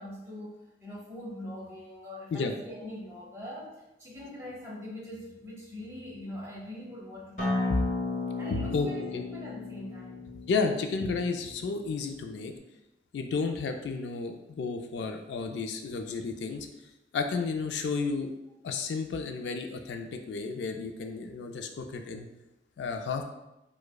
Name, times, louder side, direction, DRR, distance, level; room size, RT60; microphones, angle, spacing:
voice 1, 0.0-7.8 8.4-10.2, left 1 dB, 15° right, -5 dB, 0.8 m, -42 dB
Acoustic guitar, 7.4-12.6, left 3 dB, 40° left, 0.6 m, -34 dB
voice 2, 8.5-8.9 9.1-9.2 10.5-12.5 13.1-16.7 17.1-18.3 18.6-22.3 22.8-23.2, left 4 dB, 75° left, 5 dB, 0.3 m, -32 dB
4.7 x 2.1 x 2.3 m, 0.94 s
head